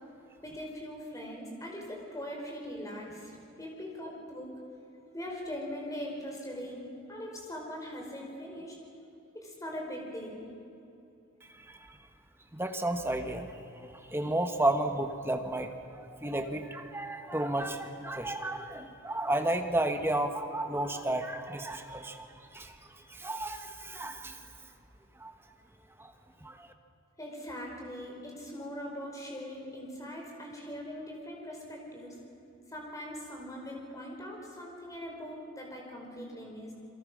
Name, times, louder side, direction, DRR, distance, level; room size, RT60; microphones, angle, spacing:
voice 1, 0.4-4.5 5.1-8.8 9.3-10.5 27.2-32.2 32.7-36.7, equal, 15° left, -1 dB, 5.0 m, -41 dB
voice 2, 11.5-12.0 12.5-24.5 25.2-25.3 26.0-26.1 26.4-26.7, right 1 dB, 10° right, 6 dB, 1.3 m, -33 dB
28.0 x 23.0 x 6.3 m, 2.7 s
head